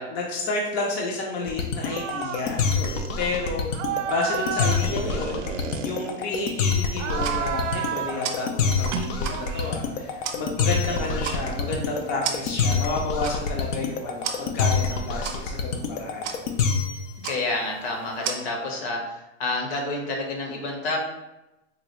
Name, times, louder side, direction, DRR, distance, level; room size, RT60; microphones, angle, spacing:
voice 1, 0.1-3.7 4.1-5.5 5.8-16.3, left 3 dB, 30° left, -1 dB, 0.4 m, -30 dB
sound 1, 1.5-17.1, left 5 dB, 90° left, 0.6 m, -26 dB
sound 2, 1.8-2.5 2.7-3.1 3.7-6.5 6.9-8.3 8.8-9.9 10.9-12.7, right 8 dB, 85° right, 0.5 m, -32 dB
sound 3, 7.0-18.3, right 7 dB, 35° right, 0.4 m, -38 dB
voice 2, 17.2-21.0, left 2 dB, 60° left, 1 dB, 1.1 m, -29 dB
3.8 x 2.3 x 3.0 m, 0.96 s
supercardioid pair, 135°, 37 cm